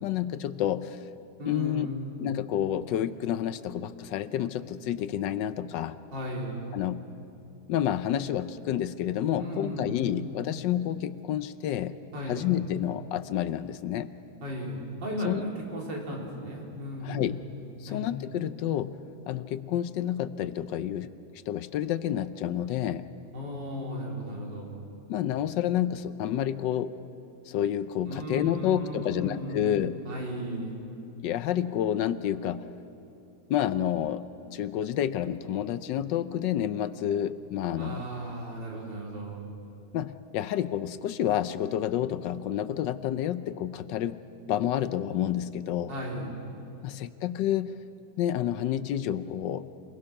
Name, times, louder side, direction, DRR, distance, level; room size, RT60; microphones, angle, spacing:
voice 1, 0.0-1.1 1.5-1.9 2.2-6.0 6.7-7.1 7.7-12.0 12.3-14.1 15.2-15.4 17.0-17.5 17.8-19.0 19.3-21.1 21.5-23.1 25.1-26.9 27.5-30.0 31.2-32.7 33.5-34.2 34.5-38.0 39.9-44.2 44.5-45.9 46.8-47.7 48.2-49.7, left 11 dB, 80° left, 14 dB, 1.3 m, -29 dB
voice 2, 1.4-2.0 6.1-6.6 9.4-10.3 12.1-12.4 14.4-17.2 17.9-18.1 23.3-24.7 28.1-30.8 37.8-39.4 45.9-46.3, equal, 80° right, -2 dB, 4.2 m, -35 dB
27.0 x 20.5 x 5.9 m, 2.7 s
omnidirectional pair, 1.9 m